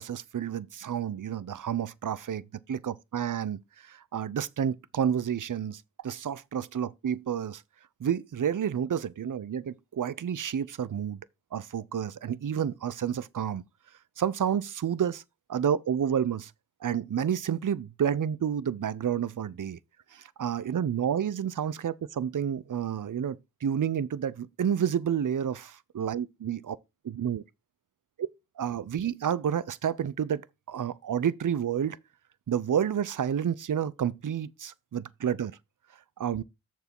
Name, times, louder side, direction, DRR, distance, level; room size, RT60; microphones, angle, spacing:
voice 1, 0.0-2.4 2.7-3.6 3.8-7.6 8.0-11.2 11.5-13.6 14.2-15.2 15.5-16.5 16.8-19.8 20.1-26.8 27.0-27.4 28.6-30.4 30.7-32.0 32.5-35.6 36.2-36.4, right 8 dB, 65° right, 0.6 m, -30 dB
6.8 x 4.6 x 5.9 m
cardioid pair, 45°, 33 cm